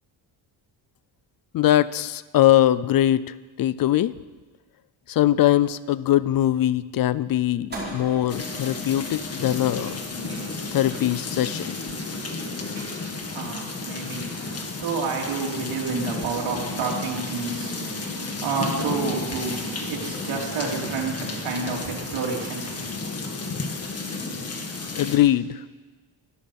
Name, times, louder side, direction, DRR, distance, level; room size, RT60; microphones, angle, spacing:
voice 1, 1.5-4.1 5.1-10.0 10.7-11.7 25.0-25.6, left 12 dB, 50° left, 0.5 m, -21 dB
sound 1, 7.7-14.0, right 2 dB, 20° right, 5.0 m, -42 dB
sound 2, 8.3-25.2, left 3 dB, 30° left, 1.7 m, -32 dB
sound 3, 9.3-15.3, right 4 dB, 50° right, 2.8 m, -51 dB
voice 2, 12.8-23.0, right 4 dB, 85° right, 3.4 m, -30 dB
16.0 x 13.0 x 5.8 m
cardioid pair, 135°, 45 cm